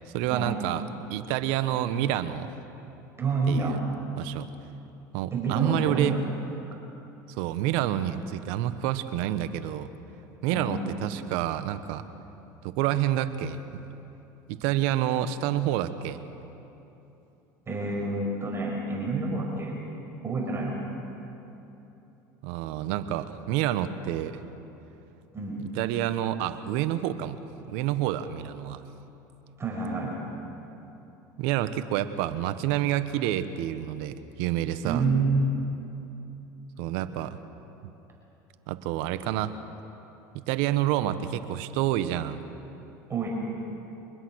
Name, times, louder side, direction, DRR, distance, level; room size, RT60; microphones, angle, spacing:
voice 1, 0.1-0.8 1.1-2.5 3.5-3.8 4.2-4.5 5.1-6.2 7.4-9.9 10.4-12.0 12.6-13.6 14.5-16.2 22.4-24.4 25.7-27.4 27.7-28.8 31.4-35.1 36.8-37.4 38.7-39.5 40.3-42.4, right 12 dB, 70° right, 12 dB, 1.2 m, -28 dB
voice 2, 3.2-3.8 5.3-6.2 10.5-10.8 17.7-19.7 20.2-20.8 25.3-25.6 29.6-30.2 34.8-35.5 43.1-43.3, right 3 dB, 25° right, -1 dB, 5.8 m, -28 dB
24.5 x 21.0 x 6.4 m, 3.0 s
hypercardioid pair, 85°, 10 cm